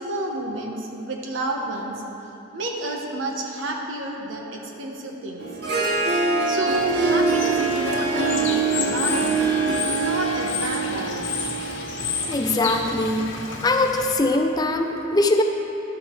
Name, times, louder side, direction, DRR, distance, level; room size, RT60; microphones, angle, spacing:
voice 1, 0.0-2.0 2.5-5.4 6.5-9.4 9.9-11.3, right 2 dB, 85° right, 1 dB, 1.1 m, -30 dB
Harp, 5.4-12.5, right 3 dB, 60° right, 1.0 m, -24 dB
Bird / Water, 6.7-14.1, left 5 dB, 75° left, 1.1 m, -32 dB
voice 2, 12.3-13.3 13.6-15.4, left 2 dB, 20° left, 4 dB, 0.4 m, -21 dB
11.5 x 6.3 x 4.5 m, 3.0 s
head